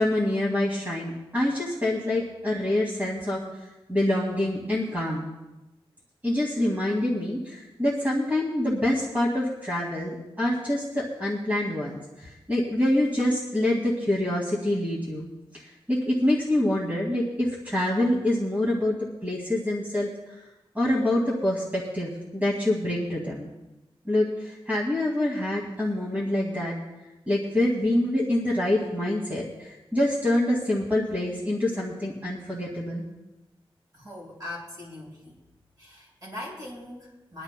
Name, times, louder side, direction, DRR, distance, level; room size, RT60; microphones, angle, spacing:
voice 1, 0.0-3.4 3.9-5.3 6.2-15.6 15.9-20.1 20.8-23.5 24.1-26.7 27.3-33.0, left 1 dB, 15° right, -5 dB, 2.1 m, -26 dB
voice 2, 33.9-35.3 35.8-37.4, left 1 dB, 40° right, -4 dB, 5.3 m, -40 dB
23.0 x 12.0 x 2.2 m, 1.0 s
wide cardioid pair, 160°, 10 cm